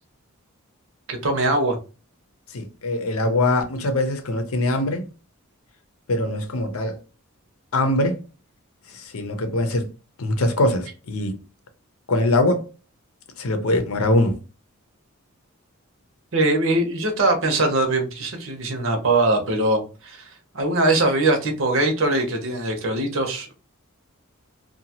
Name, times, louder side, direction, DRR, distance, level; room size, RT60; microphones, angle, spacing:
voice 1, 1.1-1.8 16.3-23.5, right 2 dB, 65° right, 0.8 m, -22 dB
voice 2, 2.5-5.1 6.1-7.0 7.7-8.2 8.9-9.9 10.2-11.4 12.1-12.7 13.4-14.3, left 1 dB, 80° left, 0.7 m, -22 dB
2.7 x 2.3 x 2.8 m
head